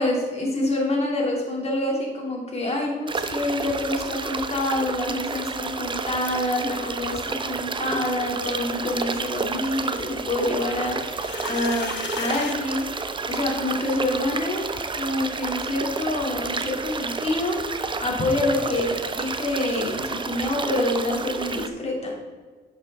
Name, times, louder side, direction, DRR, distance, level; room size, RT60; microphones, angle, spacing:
voice 1, 0.0-11.9 12.2-12.8 13.3-14.7 14.9-22.2, left 1 dB, 30° left, -2 dB, 3.1 m, -26 dB
sound 1, 3.1-21.7, right 4 dB, 25° right, 0.6 m, -30 dB
sound 2, 11.0-12.6, left 8 dB, 65° left, 0.8 m, -35 dB
11.0 x 6.6 x 3.7 m, 1.5 s
cardioid pair, 90°, 20 cm